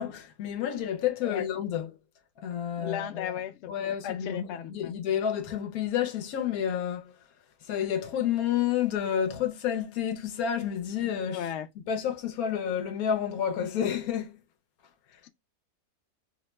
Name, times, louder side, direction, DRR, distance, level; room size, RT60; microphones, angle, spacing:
voice 1, 0.0-1.9 2.4-3.3 3.7-7.1 7.7-11.5 11.9-14.3, left 9 dB, 70° left, 1.0 m, -30 dB
voice 2, 2.8-4.9 11.3-11.7 15.2-15.3, left 10 dB, 90° left, 0.6 m, -36 dB
2.8 x 2.0 x 3.1 m
omnidirectional pair, 1.7 m